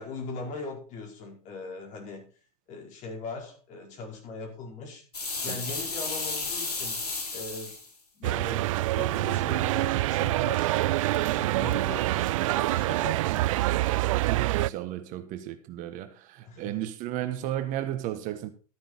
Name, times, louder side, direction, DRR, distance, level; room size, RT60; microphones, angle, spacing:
voice 1, 0.0-2.3 2.7-5.0 5.4-7.0 7.3-7.8 8.2-10.7 11.1-13.9 16.4-16.9, left 3 dB, 40° left, 4.9 m, -40 dB
sound 1, 5.1-7.9, left 3 dB, 85° left, 4.4 m, -33 dB
sound 2, 8.2-14.7, right 17 dB, 60° right, 0.5 m, -26 dB
voice 2, 14.2-18.5, right 12 dB, 40° right, 1.2 m, -34 dB
13.0 x 9.2 x 4.2 m
hypercardioid pair, 100°, 19 cm